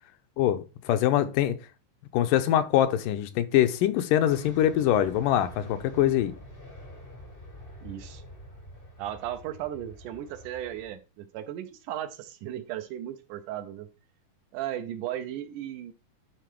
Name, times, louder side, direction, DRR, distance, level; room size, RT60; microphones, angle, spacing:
voice 1, 0.4-1.6 2.1-6.3, left 11 dB, 80° left, 2.2 m, -24 dB
sound 1, 4.3-10.9, left 1 dB, 55° left, 0.6 m, -47 dB
voice 2, 7.8-8.2 9.0-13.9 14.5-15.9, right 11 dB, 75° right, 2.1 m, -36 dB
11.0 x 4.5 x 4.6 m
omnidirectional pair, 4.0 m